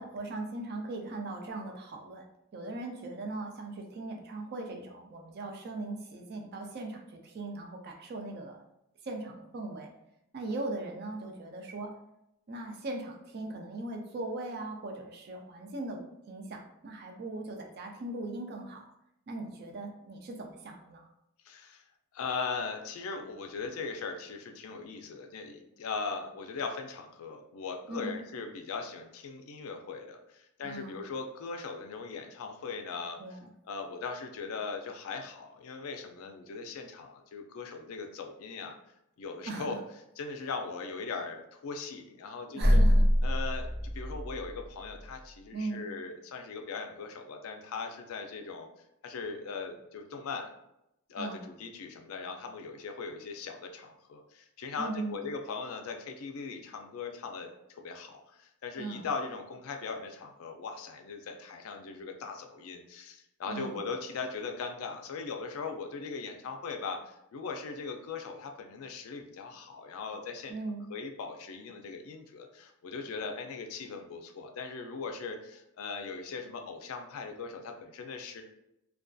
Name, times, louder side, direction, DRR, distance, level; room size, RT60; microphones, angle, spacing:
voice 1, 0.0-8.6 9.0-9.9 10.3-11.9 12.5-18.9 19.3-21.1 27.9-28.2 30.6-31.0 33.2-33.5 39.5-39.8 42.5-43.1 45.5-45.8 51.2-51.4 54.8-55.2 58.8-59.0 63.5-63.9 70.5-70.8, right 2 dB, 45° right, 2 dB, 0.4 m, -39 dB
voice 2, 21.4-21.8 22.1-33.4 33.6-38.8 39.2-39.8 40.2-42.8 43.2-48.7 49.0-50.5 51.1-70.6 70.9-78.4, left 4 dB, 70° left, 4 dB, 0.4 m, -39 dB
sound 1, 42.6-45.0, equal, 75° right, 1.0 m, -25 dB
2.5 x 2.2 x 2.3 m, 0.84 s
head